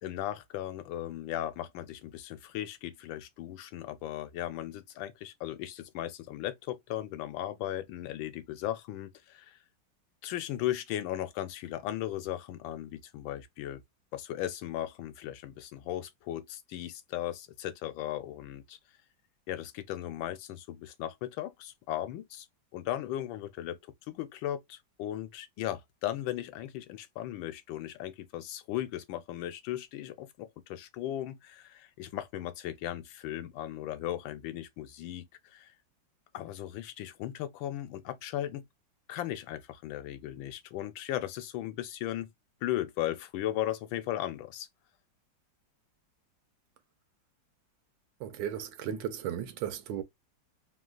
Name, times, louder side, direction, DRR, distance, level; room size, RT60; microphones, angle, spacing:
voice 1, 0.0-9.6 10.2-13.8 14.1-18.8 19.5-22.5 22.7-23.8 24.1-35.7 36.3-38.6 39.1-42.3 42.6-44.7, left 13 dB, 80° left, 1.4 m, -37 dB
voice 2, 48.2-50.0, right 9 dB, 75° right, 1.3 m, -35 dB
3.4 x 2.3 x 2.3 m
omnidirectional pair, 2.1 m